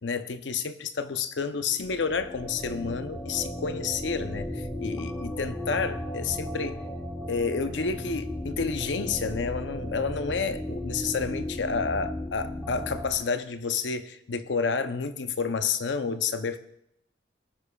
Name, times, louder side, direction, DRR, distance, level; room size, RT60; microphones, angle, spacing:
voice 1, 0.0-6.8 7.3-16.6, left 5 dB, 85° left, 10 dB, 0.7 m, -30 dB
sound 1, 1.7-13.1, left 1 dB, 10° left, 1.1 m, -35 dB
19.0 x 9.8 x 2.3 m, 0.77 s
head